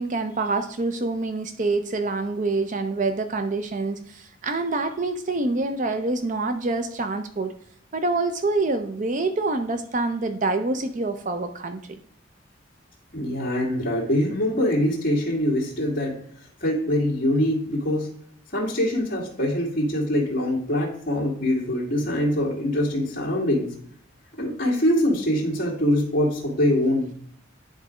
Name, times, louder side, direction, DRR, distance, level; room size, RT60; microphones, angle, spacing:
voice 1, 0.0-7.5 7.9-12.0, right 3 dB, 40° right, 8 dB, 0.5 m, -26 dB
voice 2, 13.1-18.1 18.5-23.7 24.4-27.1, left 1 dB, 45° left, -4 dB, 1.8 m, -24 dB
9.8 x 4.0 x 4.9 m, 0.63 s
head